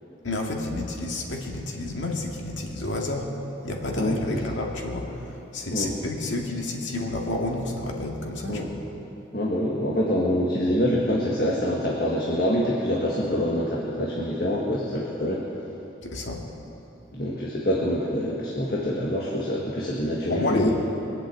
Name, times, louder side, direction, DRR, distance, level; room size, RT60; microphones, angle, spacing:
voice 1, 0.2-3.3 3.6-8.8 16.0-16.4 20.3-20.7, left 2 dB, 90° left, 0 dB, 2.2 m, -30 dB
voice 2, 4.0-4.4 5.7-5.9 8.5-8.7 9.3-15.4 17.1-20.7, equal, 50° left, -4 dB, 1.7 m, -25 dB
22.0 x 7.7 x 8.5 m, 3.0 s
head